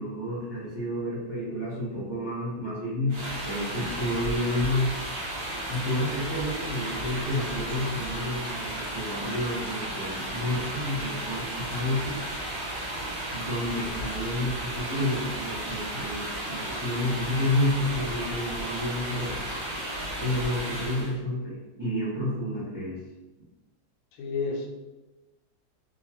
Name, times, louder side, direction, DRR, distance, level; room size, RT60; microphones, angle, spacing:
voice 1, 0.0-4.9 5.7-12.2 13.3-19.4 20.2-23.0, left 1 dB, 30° right, -8 dB, 0.4 m, -30 dB
sound 1, 3.1-21.1, right 1 dB, 50° right, 1.9 m, -34 dB
voice 2, 14.0-14.4 24.1-24.7, left 4 dB, 75° left, 2 dB, 1.2 m, -33 dB
4.3 x 2.3 x 2.9 m, 1.1 s
omnidirectional pair, 2.3 m